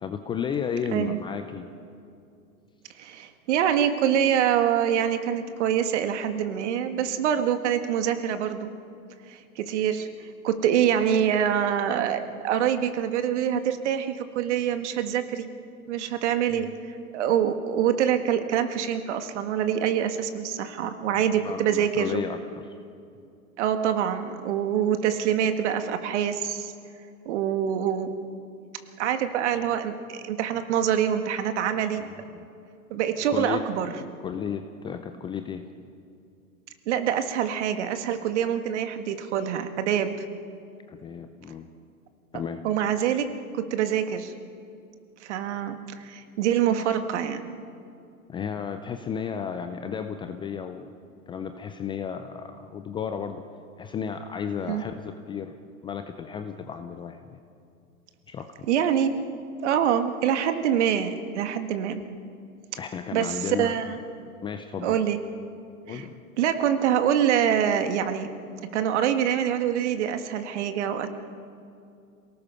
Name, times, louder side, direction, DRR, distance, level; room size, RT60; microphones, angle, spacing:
voice 1, 0.0-1.7 16.5-16.6 21.1-22.8 23.2-23.3 32.3-32.5 33.3-35.7 40.9-41.7 42.3-42.6 48.3-50.9 51.3-53.4 53.8-55.5 55.8-57.4 58.3-58.5 62.8-63.9 64.4-65.0 65.9-66.1, left 7 dB, 10° left, 8 dB, 0.5 m, -33 dB
voice 2, 3.0-8.7 9.3-10.1 10.4-15.5 15.9-16.7 17.1-22.2 23.6-26.7 27.3-28.1 29.0-32.1 32.9-33.9 36.9-40.2 42.6-44.3 45.2-47.6 54.7-54.8 58.7-59.2 59.6-62.0 63.1-64.0 64.8-65.2 65.9-66.0 66.4-68.3 68.7-71.1, right 9 dB, 50° right, 8 dB, 1.8 m, -25 dB
27.0 x 18.5 x 5.6 m, 2.5 s
hypercardioid pair, 110°, 43 cm